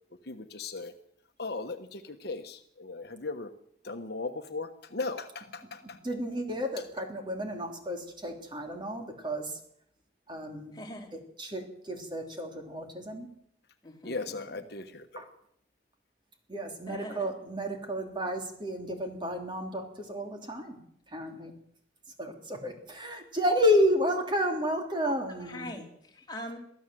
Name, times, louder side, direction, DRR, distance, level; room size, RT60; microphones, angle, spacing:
voice 1, 0.2-0.9 1.4-3.5 3.8-6.0 14.0-15.2, left 3 dB, 55° left, 7 dB, 1.2 m, -37 dB
voice 2, 6.0-9.6 10.3-10.7 11.4-13.3 15.1-15.3 16.5-20.8 21.1-21.5 22.2-25.7, equal, 25° right, 3 dB, 3.2 m, -31 dB
voice 3, 10.7-11.1 13.8-14.6 16.9-17.3 21.4-21.5 25.0-25.1 25.4-26.6, left 1 dB, 20° left, 1 dB, 3.7 m, -43 dB
23.5 x 14.5 x 7.7 m, 0.70 s
head